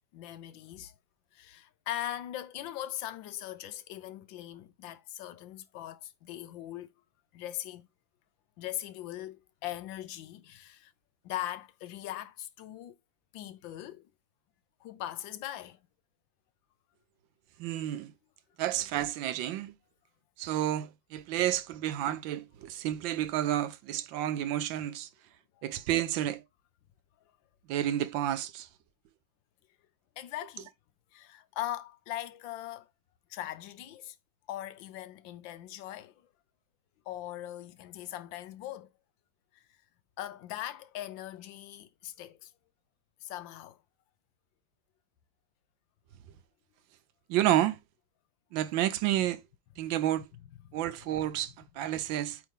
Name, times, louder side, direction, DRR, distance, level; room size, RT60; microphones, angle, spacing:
voice 1, 0.1-0.9 1.3-6.9 7.3-7.9 8.6-10.9 11.2-12.9 13.3-14.1 14.8-15.8 21.4-21.5 25.6-25.7 30.2-30.7 31.1-32.9 33.3-34.2 34.5-36.2 37.1-38.9 40.2-42.5 43.2-43.8 50.6-50.8, left 13 dB, 80° left, 1.4 m, -40 dB
voice 2, 17.6-18.1 18.6-19.7 20.4-25.1 25.6-26.4 27.7-28.7 47.3-47.8 48.5-49.4 49.8-50.3 50.7-52.4, right 12 dB, 80° right, 1.3 m, -30 dB
8.3 x 3.2 x 3.5 m
omnidirectional pair, 2.1 m